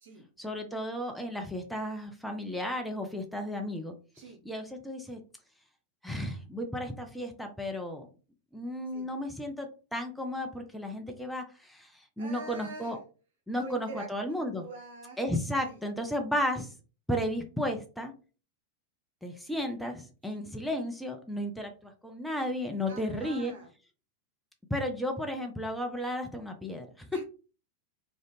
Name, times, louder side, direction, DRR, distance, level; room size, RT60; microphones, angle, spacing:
voice 1, 0.4-3.9 4.4-5.2 6.0-8.1 8.5-13.0 13.5-14.7 15.2-16.7 17.1-18.1 19.2-23.5 24.7-27.2, equal, ahead, 4 dB, 0.4 m, -34 dB
voice 2, 12.2-13.0 13.5-15.2 15.7-15.8 20.3-20.4 22.9-23.7 27.1-27.2, right 3 dB, 60° right, 2 dB, 0.8 m, -45 dB
2.4 x 2.0 x 2.9 m, 0.35 s
figure-of-eight pair, 90°, 0 cm